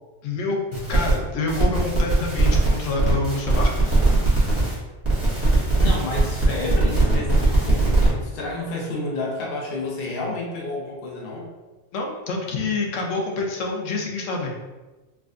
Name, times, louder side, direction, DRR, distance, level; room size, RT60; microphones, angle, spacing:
voice 1, 0.2-0.6 0.9-4.0 11.9-14.5, left 3 dB, 85° left, 0 dB, 1.0 m, -27 dB
sound 1, 0.7-1.1 1.5-4.7 5.0-8.1, right 2 dB, 10° right, 1.0 m, -20 dB
voice 2, 5.8-11.5, left 2 dB, 55° left, -2 dB, 0.9 m, -30 dB
4.6 x 2.3 x 2.5 m, 1.2 s
omnidirectional pair, 1.3 m